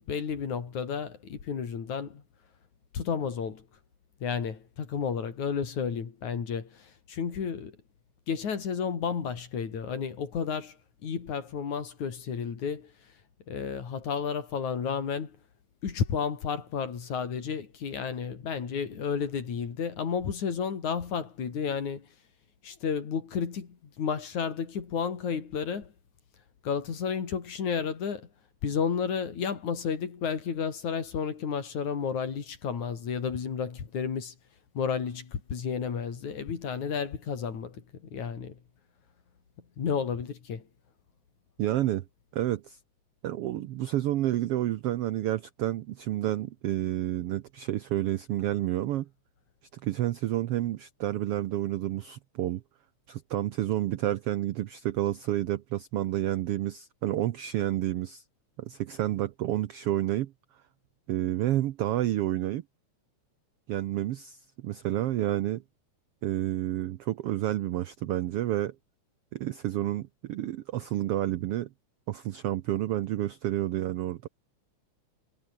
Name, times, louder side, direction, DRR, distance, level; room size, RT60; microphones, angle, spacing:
voice 1, 0.0-2.2 2.9-3.6 4.2-7.8 8.3-13.1 13.5-15.4 15.8-22.1 22.6-25.9 26.6-28.3 28.6-34.4 34.7-38.6 39.6-40.7, left 6 dB, 65° left, 4.5 m, -32 dB
voice 2, 41.6-42.0 42.3-42.8 43.2-49.1 49.7-52.6 53.1-58.2 58.6-60.3 61.1-62.6 63.7-65.6 66.2-68.7 69.3-71.7 72.1-74.3, right 13 dB, 85° right, 1.3 m, -30 dB
omnidirectional pair, 3.7 m